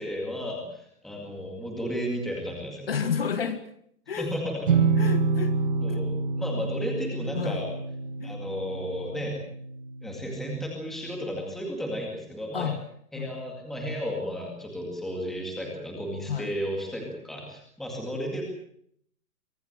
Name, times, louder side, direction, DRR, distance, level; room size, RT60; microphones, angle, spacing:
voice 1, 0.0-2.9 4.2-4.7 5.8-7.7 8.2-9.4 10.0-12.7 13.1-18.4, equal, ahead, 0 dB, 2.1 m, -33 dB
voice 2, 2.9-3.6 4.1-4.3 5.0-5.5 5.9-6.0 7.3-7.6 8.2-8.4 12.5-12.8 13.1-13.3 16.3-16.5, left 7 dB, 40° left, 10 dB, 1.7 m, -30 dB
sound 1, 4.7-10.3, right 4 dB, 35° right, 1.8 m, -27 dB
24.5 x 15.5 x 8.1 m, 0.68 s
hypercardioid pair, 175°, 46 cm